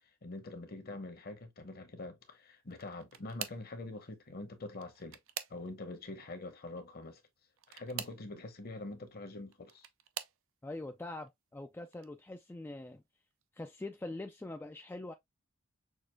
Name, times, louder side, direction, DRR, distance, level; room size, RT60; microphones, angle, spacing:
voice 1, 0.2-5.2 5.5-7.2 7.7-9.9, left 2 dB, 45° left, 1.0 m, -44 dB
sound 1, 2.7-3.8 4.7-6.0 7.6-8.3 9.3-10.4 11.2-11.5 11.9-12.1 13.4-13.5, right 11 dB, 65° right, 0.5 m, -45 dB
voice 2, 10.6-13.0 13.6-15.1, left 2 dB, 10° left, 0.3 m, -43 dB
6.3 x 2.5 x 2.2 m
head